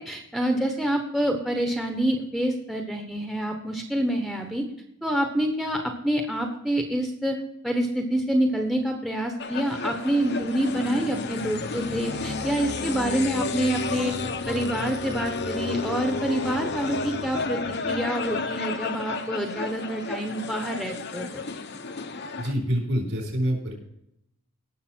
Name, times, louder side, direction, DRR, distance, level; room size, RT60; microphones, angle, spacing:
voice 1, 0.0-4.7 5.0-7.4 7.6-14.2 14.5-21.4, right 1 dB, ahead, 4 dB, 1.0 m, -27 dB
sound 1, 9.4-22.5, left 3 dB, 50° left, 0.9 m, -32 dB
voice 2, 22.4-23.7, equal, 60° right, 2 dB, 4.3 m, -26 dB
18.0 x 6.7 x 4.5 m, 0.79 s
head